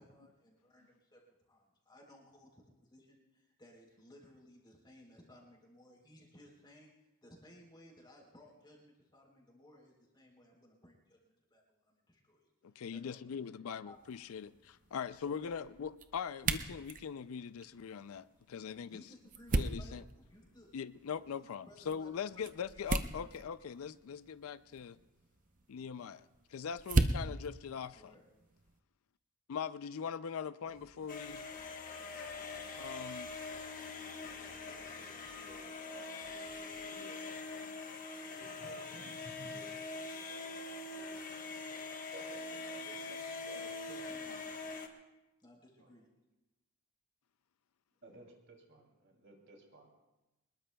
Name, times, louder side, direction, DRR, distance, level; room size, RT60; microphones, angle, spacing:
voice 1, 0.0-6.9 7.2-12.5 12.9-13.6 13.8-14.0 15.2-15.7 18.9-20.7 21.2-22.4 22.7-23.3 27.9-28.3 42.6-43.2 43.5-44.5 45.4-46.1, left 1 dB, 20° left, -1 dB, 3.7 m, -59 dB
voice 2, 12.8-19.0 19.6-20.0 20.7-25.0 25.7-26.2 26.5-28.1 29.5-31.4 32.8-33.3, left 7 dB, 75° left, 15 dB, 0.4 m, -41 dB
sound 1, 13.9-28.8, right 3 dB, 35° right, 0.6 m, -39 dB
sound 2, 30.6-37.0, left 1 dB, 15° right, 1.6 m, -62 dB
sound 3, 31.1-44.9, left 3 dB, 35° left, 1.3 m, -44 dB
voice 3, 34.6-36.3 36.9-43.7 45.8-46.0 48.0-49.9, right 2 dB, 55° right, 1 dB, 2.8 m, -57 dB
24.0 x 21.0 x 2.3 m, 1.0 s
head